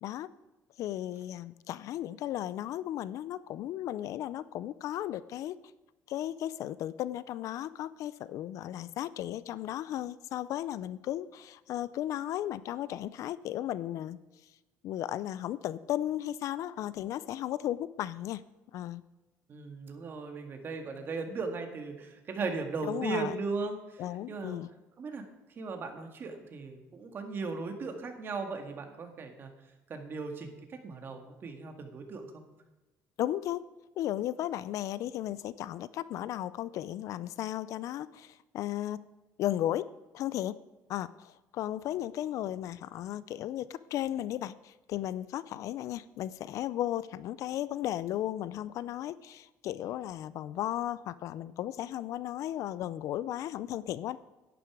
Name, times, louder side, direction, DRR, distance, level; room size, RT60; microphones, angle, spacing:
voice 1, 0.8-5.6 6.1-14.2 14.8-18.4 18.7-19.0 22.8-23.3 24.0-24.7 33.2-33.6 34.0-39.0 39.4-39.9 40.1-40.5 40.9-54.2, left 12 dB, 60° left, 17 dB, 0.4 m, -35 dB
voice 2, 19.5-24.6 25.0-25.2 25.6-29.5 29.9-32.4, right 4 dB, 35° right, 5 dB, 1.8 m, -37 dB
11.0 x 10.0 x 4.8 m, 1.1 s
cardioid pair, 140°, 6 cm